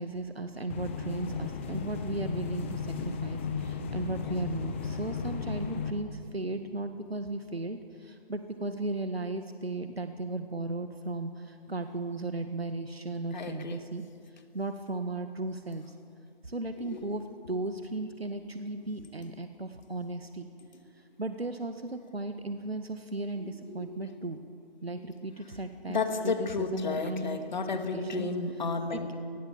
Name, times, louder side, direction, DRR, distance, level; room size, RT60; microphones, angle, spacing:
voice 1, 0.0-14.0 14.5-15.9 16.4-20.5 21.2-24.4 24.8-27.4 27.9-28.3 28.9-29.1, right 2 dB, 80° right, 7 dB, 1.8 m, -36 dB
sound 1, 0.7-5.9, left 6 dB, 10° left, 0.8 m, -35 dB
voice 2, 13.3-13.8 16.8-17.1 23.4-24.0 25.9-29.1, left 4 dB, 45° left, 7 dB, 2.5 m, -33 dB
26.5 x 20.0 x 7.4 m, 2.4 s
figure-of-eight pair, 150°, 30 cm